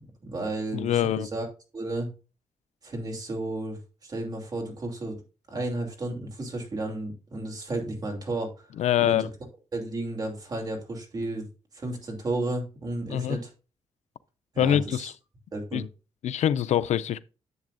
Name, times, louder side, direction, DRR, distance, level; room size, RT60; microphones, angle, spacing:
voice 1, 0.2-1.5 1.7-2.1 2.8-5.1 5.5-8.5 9.0-9.3 9.7-11.5 11.7-13.5 14.5-15.1 15.5-15.8, right 2 dB, 35° right, 2.8 m, -33 dB
voice 2, 0.7-1.3 8.8-9.3 13.1-13.4 14.6-15.1 15.7-15.9 16.2-17.2, left 10 dB, 90° left, 0.4 m, -24 dB
11.0 x 7.4 x 2.5 m
wide cardioid pair, 155°, 11 cm